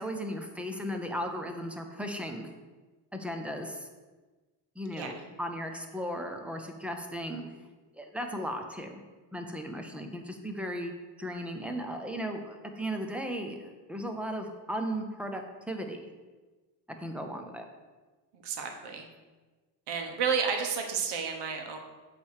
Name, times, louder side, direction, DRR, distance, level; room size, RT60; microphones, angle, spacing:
voice 1, 0.0-2.5 3.1-3.9 4.8-7.4 7.9-9.0 9.3-10.9 11.2-16.1 17.0-17.6, equal, 5° right, 4 dB, 0.5 m, -36 dB
voice 2, 18.3-19.1 19.9-21.8, right 6 dB, 80° right, 3 dB, 1.3 m, -31 dB
8.4 x 3.3 x 6.5 m, 1.3 s
cardioid pair, 160°, 40 cm